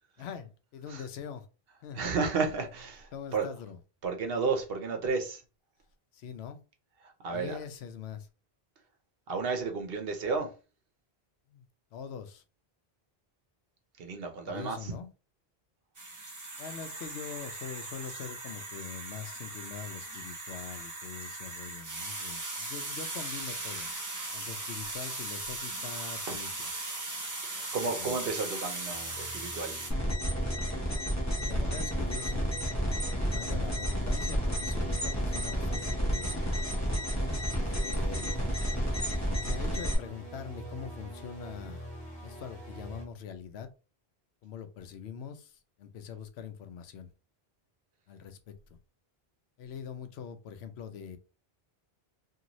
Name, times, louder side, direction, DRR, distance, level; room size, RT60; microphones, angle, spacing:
voice 1, 0.2-1.5 1.8-2.0 3.1-3.8 6.1-6.6 7.3-8.3 11.5-11.7 11.9-12.4 14.4-15.1 16.6-23.9 24.3-26.7 28.0-28.2 31.4-32.6 33.3-36.4 37.5-38.4 39.4-41.9 42.2-43.7 44.4-47.1 48.1-48.8 49.6-51.2, left 7 dB, 90° left, 0.8 m, -43 dB
voice 2, 1.9-3.5 4.0-5.4 7.2-7.6 9.3-10.5 14.0-14.9 27.4-29.8 37.3-37.6, right 4 dB, 70° right, 0.9 m, -32 dB
sound 1, 15.9-29.9, right 2 dB, 25° right, 0.4 m, -38 dB
sound 2, 28.9-43.0, right 1 dB, 45° left, 1.0 m, -44 dB
sound 3, 29.9-39.9, equal, 15° left, 0.8 m, -31 dB
2.7 x 2.6 x 2.9 m
omnidirectional pair, 1.0 m